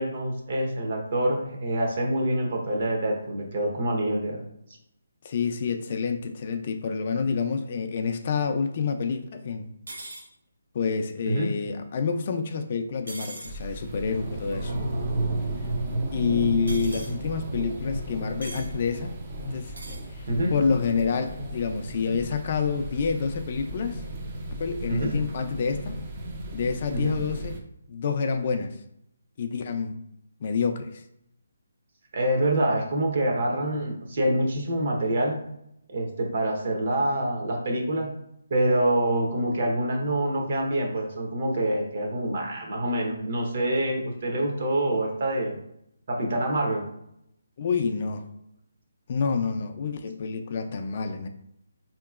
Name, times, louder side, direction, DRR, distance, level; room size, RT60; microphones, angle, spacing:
voice 1, 0.0-4.4 11.3-11.5 20.3-20.5 24.9-25.1 26.9-27.2 32.1-35.4 35.9-38.1 38.5-45.6 46.1-46.8, right 1 dB, 50° right, 0 dB, 0.9 m, -26 dB
voice 2, 5.2-9.7 10.7-14.7 16.1-19.2 19.5-24.0 24.6-26.0 26.5-27.6 27.9-28.8 29.4-30.0 30.4-31.0 47.6-48.3 49.1-51.3, left 5 dB, 40° left, 6 dB, 0.4 m, -28 dB
sound 1, 9.9-10.2 13.1-13.5 16.7-17.1 18.4-18.7 19.7-20.0, right 2 dB, 85° right, 1.1 m, -39 dB
sound 2, 13.4-27.6, right 1 dB, 35° right, 0.5 m, -33 dB
4.5 x 2.9 x 2.4 m, 0.77 s
hypercardioid pair, 165°, 0 cm